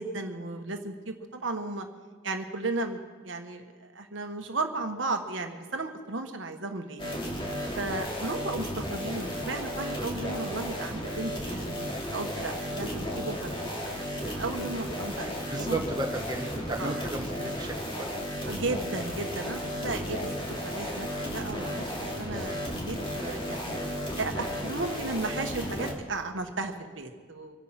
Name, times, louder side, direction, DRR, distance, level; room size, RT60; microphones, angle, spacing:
voice 1, 0.0-1.9 2.2-7.0 7.7-11.7 12.1-13.9 14.2-15.8 16.8-17.0 18.5-23.7 24.2-27.6, right 3 dB, 65° right, 5 dB, 1.3 m, -35 dB
sound 1, 7.0-25.9, equal, 25° left, 2.3 m, -34 dB
voice 2, 15.2-18.1, right 2 dB, 20° right, 1 dB, 1.3 m, -34 dB
25.5 x 8.9 x 5.9 m, 1.5 s
head